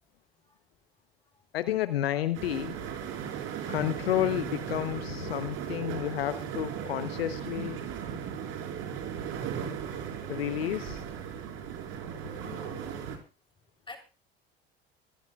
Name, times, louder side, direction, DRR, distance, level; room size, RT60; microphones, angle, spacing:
voice 1, 1.5-2.8 3.7-7.8 10.3-11.0 12.0-12.4, left 12 dB, 75° left, 1.1 m, -31 dB
sound 1, 2.3-13.2, right 8 dB, 55° right, 5.2 m, -37 dB
voice 2, 7.9-8.3 8.6-9.1 12.3-13.2 13.9-14.0, left 2 dB, 15° left, 4.0 m, -50 dB
24.0 x 16.5 x 2.5 m
figure-of-eight pair, 70°, 30 cm